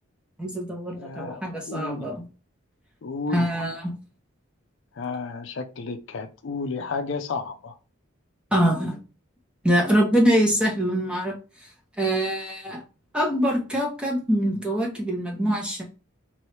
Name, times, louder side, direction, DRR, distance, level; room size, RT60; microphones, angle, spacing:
voice 1, 0.4-2.2 3.3-3.9 8.5-9.0 9.6-11.4 12.0-12.8 13.1-15.8, equal, 5° right, -1 dB, 0.8 m, -24 dB
voice 2, 1.0-2.1 3.0-3.5 5.0-7.7, left 4 dB, 60° left, 7 dB, 0.4 m, -32 dB
3.1 x 3.0 x 3.2 m, 0.33 s
head